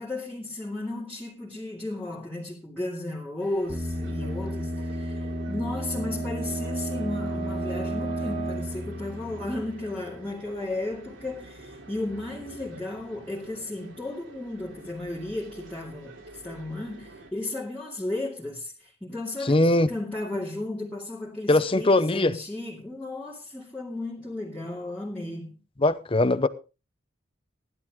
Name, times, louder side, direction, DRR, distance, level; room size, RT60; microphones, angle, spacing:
voice 1, 0.0-19.6 19.9-25.6, left 2 dB, 10° left, 2.5 m, -34 dB
sound 1, 3.4-17.3, right 2 dB, 80° right, 2.9 m, -47 dB
sound 2, 3.7-10.3, right 1 dB, 40° right, 1.8 m, -32 dB
voice 2, 19.4-19.9 21.5-22.4 25.8-26.5, left 2 dB, 30° left, 0.7 m, -21 dB
16.0 x 11.0 x 3.6 m
head